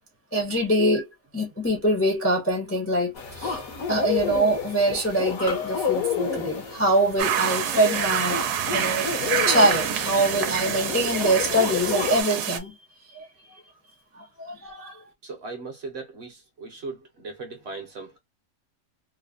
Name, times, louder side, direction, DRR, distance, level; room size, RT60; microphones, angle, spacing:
voice 1, 0.3-3.6 3.9-12.7 13.1-13.6 14.1-15.0, right 1 dB, 20° left, 0.3 m, -24 dB
sound 1, 3.1-12.2, left 7 dB, 70° left, 1.2 m, -31 dB
sound 2, 7.2-12.6, right 9 dB, 85° right, 1.1 m, -27 dB
voice 2, 15.2-18.2, right 3 dB, 55° right, 0.9 m, -38 dB
3.1 x 2.0 x 2.4 m
omnidirectional pair, 1.6 m